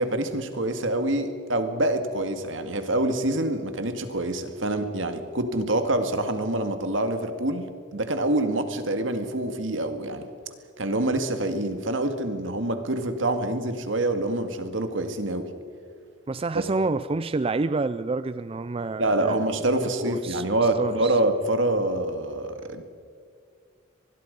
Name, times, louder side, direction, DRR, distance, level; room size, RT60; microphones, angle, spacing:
voice 1, 0.0-10.3 10.8-15.5 16.5-16.6 19.0-22.8, right 1 dB, 75° right, 8 dB, 2.1 m, -26 dB
voice 2, 16.3-19.5 19.8-20.5 20.8-21.2, right 3 dB, 30° right, 14 dB, 0.4 m, -28 dB
24.5 x 21.0 x 5.4 m, 2.2 s
head